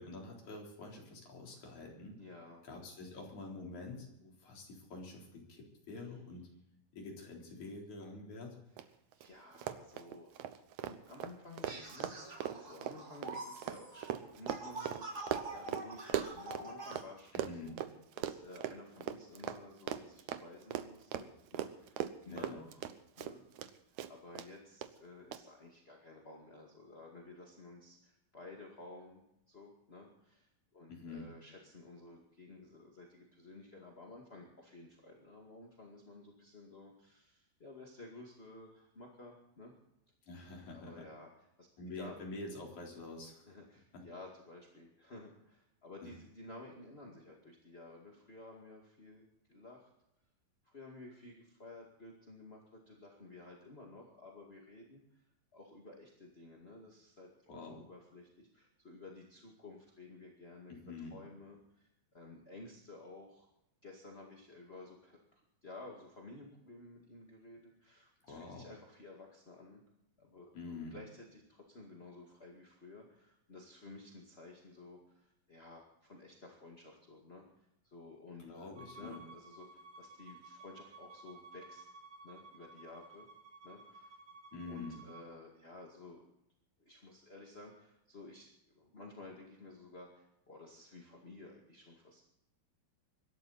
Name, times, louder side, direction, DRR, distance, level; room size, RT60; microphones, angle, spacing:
voice 1, 0.0-2.2 2.6-6.5 6.9-8.6 17.3-17.8 22.3-22.6 30.9-31.3 40.3-41.1 41.8-43.6 43.9-44.0 57.5-57.8 60.7-61.2 68.3-68.7 70.5-71.0 78.4-79.2 84.5-85.0, left 3 dB, 55° left, -1 dB, 5.1 m, -47 dB
voice 2, 2.2-2.7 5.9-6.1 8.7-8.8 9.1-10.3 10.8-22.9 23.2-23.4 23.7-29.2 29.5-39.7 40.7-41.7 41.9-42.2 43.4-49.9 50.6-61.9 62.1-63.5 63.8-65.2 65.6-69.8 70.2-81.9 82.2-83.3 83.6-84.1 84.6-86.3 86.8-88.5 88.7-92.2, left 2 dB, 25° left, -1 dB, 1.5 m, -53 dB
Run, 8.8-8.9 9.1-9.3 9.6-17.1 17.4-23.7 24.0-24.5 24.8-24.9 25.3-25.4, right 11 dB, 70° right, 1.8 m, -39 dB
sound 1, 11.6-17.0, right 2 dB, 25° right, 3.6 m, -46 dB
Bowed string instrument, 78.7-85.3, right 3 dB, 55° right, 7.2 m, -55 dB
23.5 x 12.5 x 4.2 m, 0.83 s
omnidirectional pair, 4.2 m